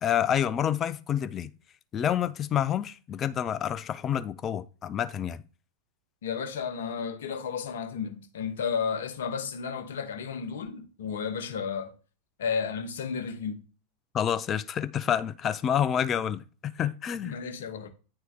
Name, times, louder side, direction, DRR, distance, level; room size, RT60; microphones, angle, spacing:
voice 1, 0.0-1.5 1.9-5.4 14.1-17.4, left 9 dB, 25° left, 0.4 m, -28 dB
voice 2, 6.2-11.9 12.4-13.6 17.2-17.9, left 6 dB, 60° left, 0.9 m, -33 dB
9.6 x 4.4 x 2.2 m
figure-of-eight pair, 90°, 0 cm